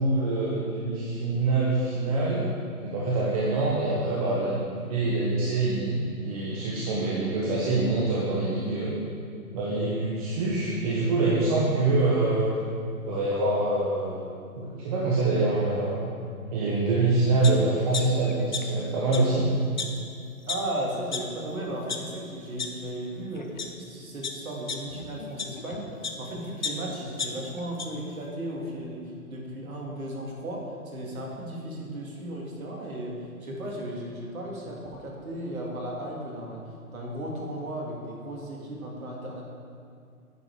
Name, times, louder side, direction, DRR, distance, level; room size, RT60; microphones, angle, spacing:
voice 1, 0.0-2.5 2.8-8.9 9.5-12.5 13.1-14.2 14.6-16.1 16.5-19.5, right 2 dB, 25° right, -6 dB, 0.9 m, -25 dB
sound 1, 17.4-17.5 17.9-18.8 19.1-19.2 19.8-19.9 20.5-20.6 21.1-21.2 21.7-22.0 22.6-22.7 23.4-23.7 24.2-26.2 26.6-27.9 28.3-28.4, left 5 dB, 35° left, 0.4 m, -33 dB
voice 2, 20.4-39.4, right 1 dB, 70° right, -2 dB, 2.3 m, -35 dB
9.6 x 5.3 x 4.8 m, 2.4 s
hypercardioid pair, 140°, 45 cm